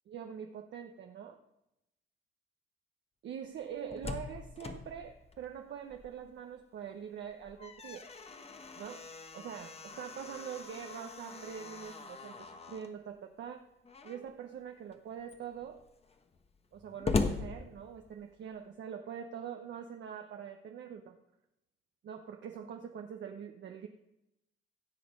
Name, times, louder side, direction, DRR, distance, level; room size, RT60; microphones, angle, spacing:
voice 1, 0.1-1.4 3.2-8.1 8.8-9.1 9.3-13.7 14.0-15.8 16.7-21.2 22.0-23.9, right 8 dB, 65° right, 4 dB, 0.9 m, -44 dB
Slam, 3.6-6.4 6.8-6.9 7.3-12.9 13.8-14.4 14.9-15.0 15.2-18.4, left 4 dB, 30° left, 1.2 m, -40 dB
16.5 x 6.9 x 5.2 m, 0.88 s
cardioid pair, 90°, 20 cm